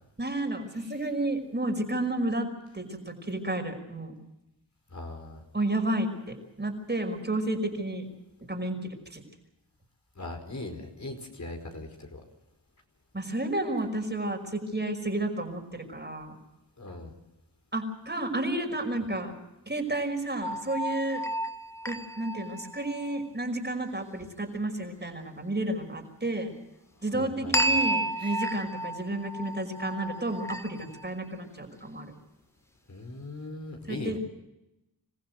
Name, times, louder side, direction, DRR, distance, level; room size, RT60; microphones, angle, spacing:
voice 1, 0.2-2.5 2.7-4.1 5.5-8.1 8.4-9.2 13.1-16.4 17.7-19.3 19.7-21.2 21.9-26.5 27.0-32.1 33.9-34.2, right 1 dB, 25° right, 4 dB, 5.5 m, -31 dB
voice 2, 4.9-5.4 10.2-12.2 16.8-17.1 27.1-27.8 32.9-34.2, left 2 dB, 40° left, 3 dB, 4.9 m, -39 dB
sound 1, 20.4-23.3 27.5-31.1, right 1 dB, 5° left, 1.3 m, -32 dB
27.0 x 15.5 x 8.2 m, 0.94 s
cardioid pair, 50°, 41 cm